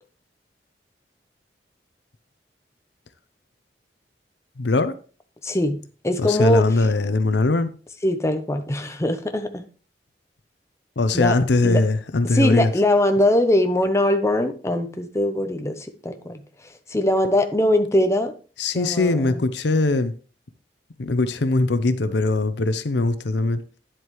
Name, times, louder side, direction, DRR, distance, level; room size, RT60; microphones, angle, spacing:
voice 1, 4.6-5.0 6.2-7.7 11.0-12.7 18.6-20.1 21.0-23.6, left 2 dB, 75° left, 0.7 m, -21 dB
voice 2, 5.4-6.7 8.0-9.6 11.1-11.4 11.6-11.8 12.2-16.4 16.9-18.3 18.7-19.4, left 1 dB, 15° left, 0.8 m, -21 dB
9.9 x 7.7 x 3.1 m
head